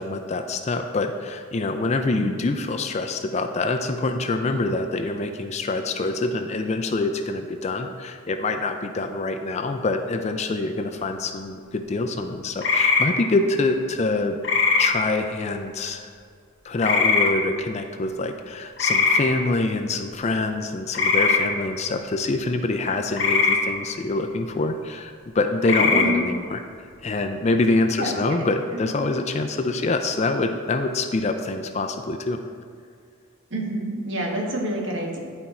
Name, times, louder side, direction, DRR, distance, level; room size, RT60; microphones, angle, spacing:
voice 1, 0.0-14.4 14.8-16.1 16.6-26.6 27.0-32.4, left 2 dB, 30° left, 6 dB, 0.4 m, -25 dB
sound 1, 12.6-13.1 14.4-14.9 16.8-17.3 18.8-19.2 20.9-21.4 23.2-23.6 25.6-26.1, left 4 dB, 55° left, 0.9 m, -19 dB
voice 2, 25.8-26.2 28.0-28.5 28.7-28.8 33.5-35.2, equal, 60° right, -1 dB, 1.3 m, -28 dB
10.5 x 4.4 x 4.2 m, 2.2 s
head